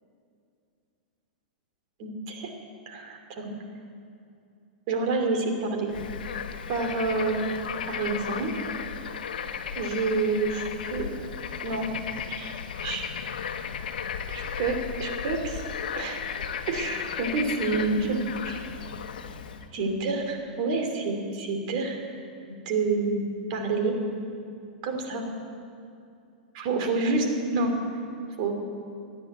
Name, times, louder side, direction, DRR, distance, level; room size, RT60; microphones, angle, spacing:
voice 1, 2.0-2.5 2.9-3.5 4.9-5.9 6.7-7.4 7.9-8.6 9.8-11.1 11.6-11.9 12.3-12.6 12.8-13.0 14.3-15.6 15.9-16.2 16.7-18.2 18.4-18.6 19.7-22.0 22.6-23.2 23.5-23.9 24.8-25.2 26.5-27.7 28.4-28.5, right 3 dB, 55° right, 3 dB, 2.7 m, -28 dB
Bird / Frog, 5.9-19.7, left 7 dB, 80° left, 0.9 m, -35 dB
14.5 x 9.6 x 8.0 m, 2.5 s
hypercardioid pair, 125°, 5 cm